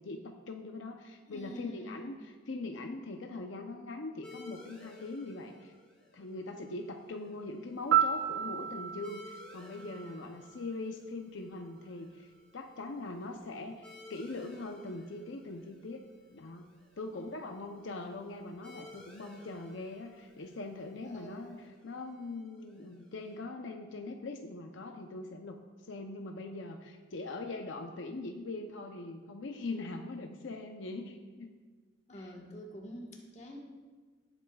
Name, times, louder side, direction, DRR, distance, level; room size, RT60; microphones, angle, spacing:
voice 1, 0.0-5.7 6.1-16.0 16.3-16.7 17.0-31.5 32.1-32.3, left 2 dB, 75° left, 4 dB, 0.6 m, -42 dB
voice 2, 1.3-2.0 17.1-17.2 21.0-21.7 32.1-33.6, equal, 35° left, 0 dB, 1.3 m, -47 dB
sound 1, 4.2-23.4, left 2 dB, 5° left, 2.9 m, -57 dB
Piano, 7.9-10.8 19.0-19.2, right 9 dB, 75° right, 0.4 m, -32 dB
16.0 x 8.1 x 2.3 m, 1.4 s
head